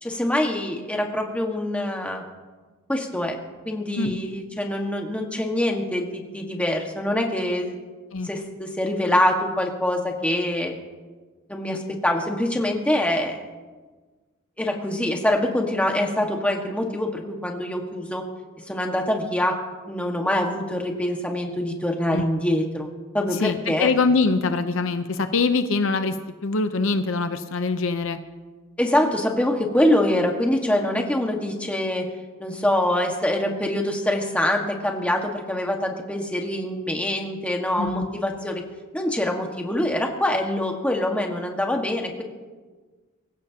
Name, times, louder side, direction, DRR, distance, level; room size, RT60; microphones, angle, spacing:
voice 1, 0.0-2.2 2.9-3.4 3.6-7.8 8.2-10.7 11.5-13.4 14.6-18.2 18.7-19.6 19.9-22.9 23.1-23.9 28.8-32.1 32.4-38.6 38.9-42.2, left 1 dB, 5° left, 1 dB, 1.6 m, -24 dB
voice 2, 23.4-26.2 26.4-28.2 37.8-38.1, left 4 dB, 65° left, 9 dB, 0.7 m, -23 dB
24.5 x 15.5 x 2.9 m, 1.4 s
head